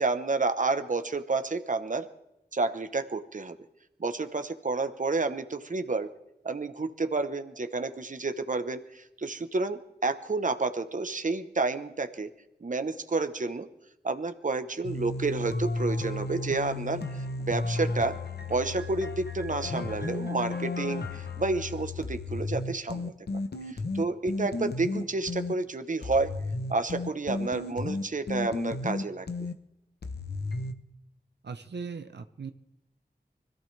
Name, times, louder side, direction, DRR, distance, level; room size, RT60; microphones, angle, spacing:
voice 1, 0.0-2.1 2.5-3.6 4.0-6.1 6.4-12.3 12.6-13.7 14.0-18.2 18.5-26.4 26.7-29.3, right 3 dB, 50° right, 9 dB, 1.0 m, -30 dB
sound 1, 14.8-25.6 26.0-29.6 30.0-30.7, left 2 dB, 70° left, 1.0 m, -33 dB
voice 2, 31.4-32.5, right 5 dB, 85° right, 8 dB, 0.8 m, -38 dB
25.0 x 14.5 x 3.4 m, 0.87 s
wide cardioid pair, 80°, 17 cm